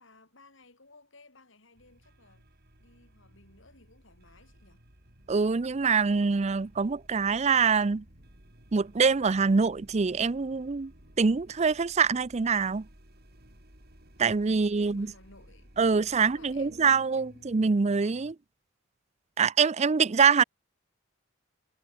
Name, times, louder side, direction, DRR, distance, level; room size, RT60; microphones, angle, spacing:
voice 1, 0.0-2.5 2.8-4.8 14.5-15.7 16.2-17.7, left 2 dB, 65° left, 5.2 m, -57 dB
sound 1, 1.7-18.3, equal, 50° right, 7.5 m, -56 dB
voice 2, 5.3-8.0 8.7-10.9 11.2-12.8 14.2-15.1 15.8-18.4 19.4-20.4, right 5 dB, 35° right, 0.5 m, -24 dB
head